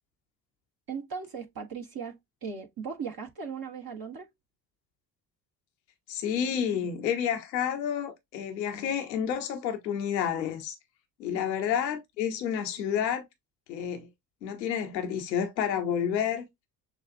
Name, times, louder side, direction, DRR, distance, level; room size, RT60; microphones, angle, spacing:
voice 1, 0.9-4.3 11.3-11.4, right 6 dB, 45° right, 1.5 m, -38 dB
voice 2, 6.1-10.8 11.2-13.3 13.7-14.1 14.4-16.5, left 8 dB, 85° left, 0.9 m, -30 dB
6.9 x 2.4 x 2.6 m
hypercardioid pair, 55°, 50 cm